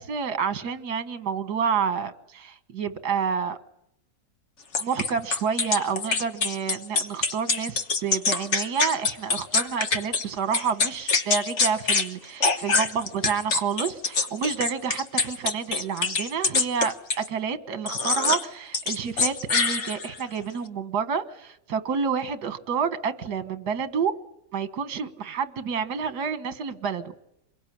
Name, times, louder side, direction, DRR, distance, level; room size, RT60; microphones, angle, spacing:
voice 1, 0.0-3.6 4.8-24.1 24.5-27.1, right 6 dB, 75° right, 1.8 m, -29 dB
sound 1, 4.7-10.2 10.5-12.1 12.4-17.3 17.9-18.5 18.7-20.2, left 4 dB, 45° left, 1.4 m, -25 dB
26.0 x 22.5 x 10.0 m
omnidirectional pair, 1.7 m